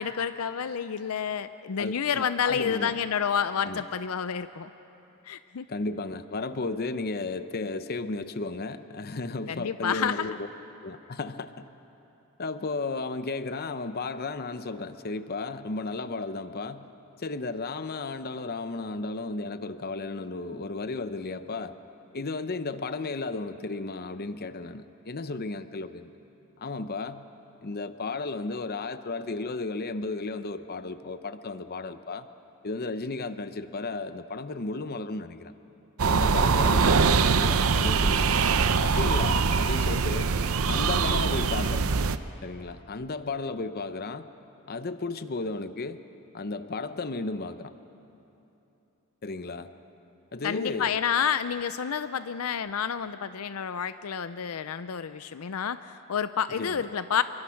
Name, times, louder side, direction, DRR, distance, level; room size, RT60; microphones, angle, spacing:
voice 1, 0.0-4.7 5.3-5.7 9.5-10.3 50.4-57.2, left 7 dB, 75° left, 12 dB, 0.5 m, -29 dB
voice 2, 1.8-3.0 3.6-3.8 5.7-10.5 10.8-11.7 12.4-16.9 17.2-21.8 22.1-26.1 26.6-27.2 27.6-32.3 32.6-35.5 36.0-38.4 38.8-40.3 40.7-41.9 42.4-44.3 44.7-46.0 46.3-47.8 49.2-49.7 50.3-50.9 56.6-56.8, left 3 dB, 45° left, 11 dB, 0.7 m, -34 dB
sound 1, 36.0-42.2, right 5 dB, 70° right, 0.7 m, -23 dB
26.5 x 23.0 x 5.9 m, 3.0 s
head